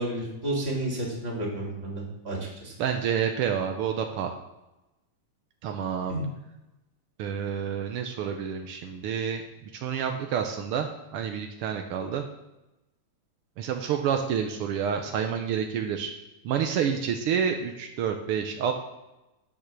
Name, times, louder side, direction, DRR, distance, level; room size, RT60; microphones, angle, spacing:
voice 1, 0.0-2.7 6.1-6.2, right 1 dB, 20° right, -3 dB, 2.8 m, -31 dB
voice 2, 2.8-4.3 5.6-6.2 7.2-9.4 9.7-12.2 13.6-16.1 16.4-18.7, right 8 dB, 80° right, 4 dB, 1.3 m, -28 dB
9.3 x 8.2 x 6.3 m, 0.98 s
omnidirectional pair, 3.4 m